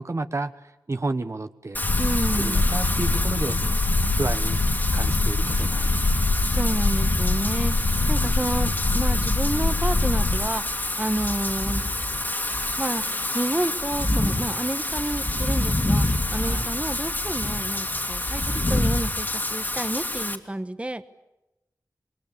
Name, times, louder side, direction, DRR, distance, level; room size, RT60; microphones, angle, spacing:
voice 1, 0.0-1.8 2.3-3.8 4.1-4.6 4.9-6.2 7.9-8.5 16.4-16.8, right 2 dB, 45° right, 10 dB, 1.2 m, -32 dB
Wind / Rain, 1.7-20.4, left 1 dB, 30° left, 2.3 m, -27 dB
sound 1, 1.8-10.5, left 2 dB, 75° left, 2.0 m, -24 dB
voice 2, 2.0-2.6 6.1-11.8 12.8-13.0 13.3-16.1 16.3-21.1, right 1 dB, 20° right, 11 dB, 1.2 m, -30 dB
26.5 x 21.5 x 8.5 m, 0.96 s
wide cardioid pair, 90°, 7 cm